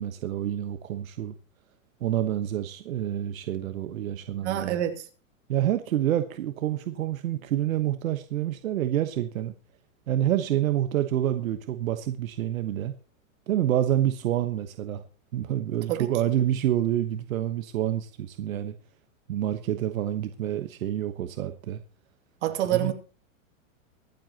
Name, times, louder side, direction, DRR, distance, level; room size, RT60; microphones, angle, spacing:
voice 1, 0.0-1.3 2.0-4.8 5.5-9.5 10.1-12.9 13.5-15.0 15.3-18.7 19.3-21.8 22.7-22.9, right 12 dB, 85° right, 1.2 m, -27 dB
voice 2, 4.4-5.1 15.9-16.1 22.4-22.9, right 11 dB, 60° right, 2.6 m, -27 dB
24.0 x 8.0 x 2.9 m
supercardioid pair, 155°, 40 cm